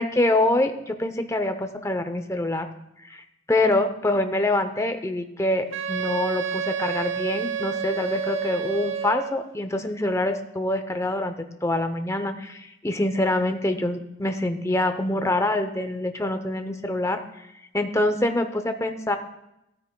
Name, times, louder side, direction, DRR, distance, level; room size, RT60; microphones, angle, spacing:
voice 1, 0.0-2.7 3.0-17.5 17.7-19.2, left 1 dB, 15° left, 7 dB, 0.6 m, -25 dB
Wind instrument woodwind instrument, 5.7-9.5, right 7 dB, 70° right, 0.7 m, -29 dB
16.5 x 9.1 x 2.2 m, 0.86 s
head